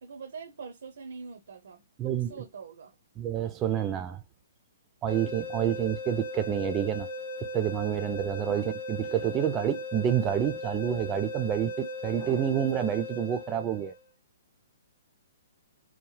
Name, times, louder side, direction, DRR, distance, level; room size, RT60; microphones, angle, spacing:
voice 1, 0.0-2.9 8.5-8.6, right 5 dB, 75° right, 0.5 m, -43 dB
voice 2, 2.0-2.4 3.2-4.2 5.0-7.1 7.5-13.9, right 9 dB, 20° right, 0.4 m, -28 dB
sound 1, 5.1-14.0, left 1 dB, 70° left, 0.7 m, -37 dB
2.9 x 2.1 x 3.1 m
hypercardioid pair, 155°, 0 cm